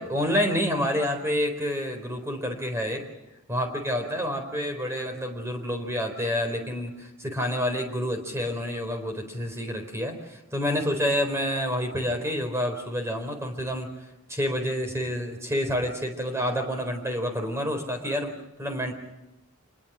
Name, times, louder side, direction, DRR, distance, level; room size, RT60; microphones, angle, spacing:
voice 1, 0.0-3.0 3.5-13.9 14.3-18.3 18.6-18.9, equal, 15° right, 4 dB, 4.1 m, -28 dB
27.0 x 21.0 x 6.2 m, 0.94 s
head